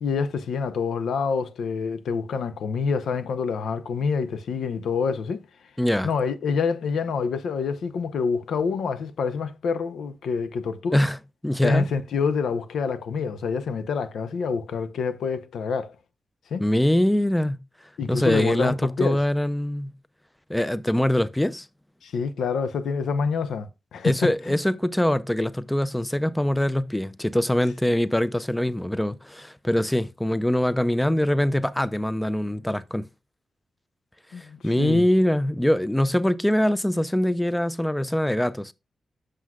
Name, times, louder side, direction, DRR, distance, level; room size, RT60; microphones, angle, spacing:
voice 1, 0.0-5.5 6.0-11.0 11.6-16.0 16.5-16.6 18.0-19.2 22.0-24.6 34.3-35.0, left 5 dB, 90° left, 0.6 m, -27 dB
voice 2, 5.8-6.1 10.9-11.2 11.4-11.9 16.6-17.6 18.1-19.9 20.5-21.7 24.0-33.1 34.4-38.7, left 1 dB, 5° left, 0.4 m, -23 dB
7.7 x 6.2 x 2.3 m
cardioid pair, 100°, 0 cm